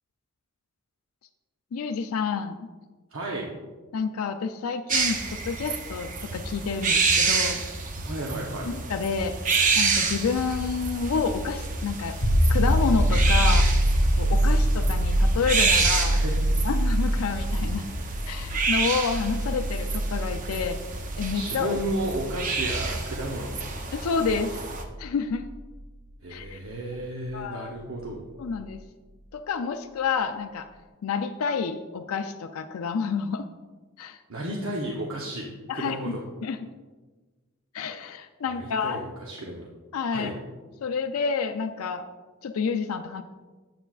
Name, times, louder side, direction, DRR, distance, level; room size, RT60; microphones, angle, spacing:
voice 1, 1.7-2.6 3.9-7.6 8.6-9.3 9.8-12.2 12.5-13.7 14.2-16.2 16.6-17.9 18.3-20.8 21.2-21.8 23.9-24.6 25.0-25.4 26.3-26.6 27.3-27.7 28.4-28.8 29.3-30.7 31.0-33.5 34.0-34.2 35.7-36.2 36.4-36.7 37.7-39.0 39.9-40.3 40.8-42.1 42.4-43.2, left 5 dB, 80° left, 8 dB, 0.4 m, -29 dB
voice 2, 3.1-3.5 8.0-8.7 16.1-16.6 17.9-18.1 21.3-23.5 26.2-28.3 34.3-35.5 35.7-36.2 38.5-39.7 40.1-40.3, right 1 dB, 65° right, -2 dB, 0.8 m, -33 dB
sound 1, 4.9-24.8, right 4 dB, 40° right, 0.7 m, -29 dB
sound 2, 12.2-25.7 28.4-28.5, right 1 dB, 60° left, 0.9 m, -25 dB
9.1 x 7.6 x 2.4 m, 1.3 s
head